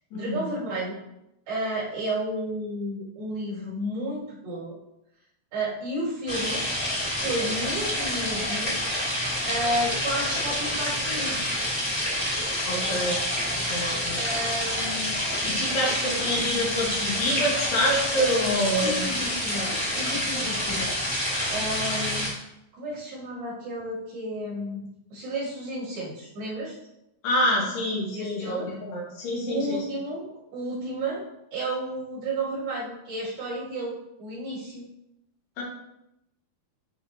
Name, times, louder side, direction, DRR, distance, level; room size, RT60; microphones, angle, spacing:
voice 1, 0.1-1.0 1.5-4.8 5.5-6.6 7.1-8.8 9.4-11.5 14.1-15.2 16.0-16.4 18.7-20.9 21.5-22.3 22.7-26.8 28.1-28.7 29.5-31.2 31.5-34.9, right 1 dB, 65° right, -9 dB, 4.7 m, -32 dB
sound 1, 6.3-22.3, left 1 dB, 10° left, 2.0 m, -28 dB
voice 2, 12.7-13.2 13.7-14.2 15.4-19.0 20.3-20.5 27.2-29.8 35.6-35.7, equal, 80° left, -4 dB, 4.0 m, -27 dB
11.5 x 4.3 x 3.0 m, 0.86 s
omnidirectional pair, 4.7 m